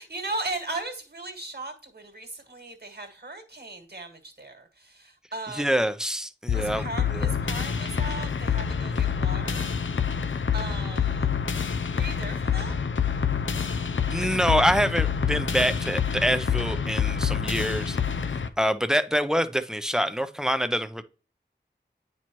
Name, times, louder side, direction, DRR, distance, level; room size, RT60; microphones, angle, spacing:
voice 1, 0.0-5.8 6.5-9.7 10.5-11.3 11.9-12.8, right 2 dB, 60° right, 1.6 m, -37 dB
voice 2, 5.6-7.3 8.9-9.2 14.1-18.0 18.6-21.0, equal, 5° right, 0.5 m, -26 dB
sound 1, 6.5-18.5, left 7 dB, 85° left, 0.5 m, -27 dB
9.4 x 4.4 x 3.0 m
wide cardioid pair, 50°, 19 cm